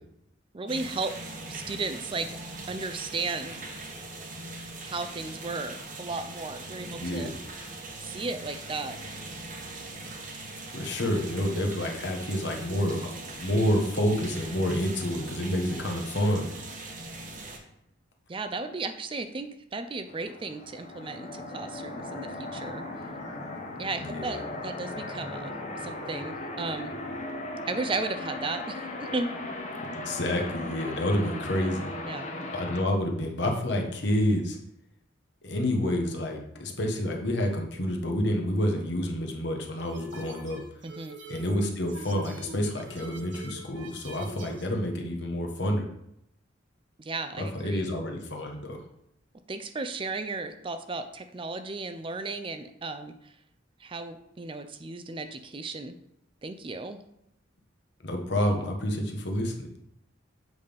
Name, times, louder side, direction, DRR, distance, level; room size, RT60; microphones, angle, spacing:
voice 1, 0.5-1.1 1.5-2.3 2.7-3.6 4.8-7.3 8.0-9.0 18.3-22.8 23.8-26.9 27.7-29.3 32.1-32.3 40.8-41.2 47.0-47.9 49.5-53.3 53.8-56.0 56.4-57.0, right 3 dB, 25° right, 9 dB, 0.4 m, -35 dB
sound 1, 0.7-17.6, right 2 dB, 40° right, 1.0 m, -41 dB
voice 2, 7.0-7.3 10.7-13.0 13.4-16.5 24.0-24.5 29.9-31.9 32.5-34.6 35.4-40.6 41.3-45.9 47.4-48.8 58.0-59.7, left 1 dB, 60° left, 2 dB, 1.1 m, -28 dB
sound 2, 20.1-32.8, left 2 dB, 35° left, 1.0 m, -37 dB
sound 3, 39.8-44.7, right 1 dB, 65° right, 0.8 m, -45 dB
8.0 x 3.4 x 5.2 m, 0.78 s
head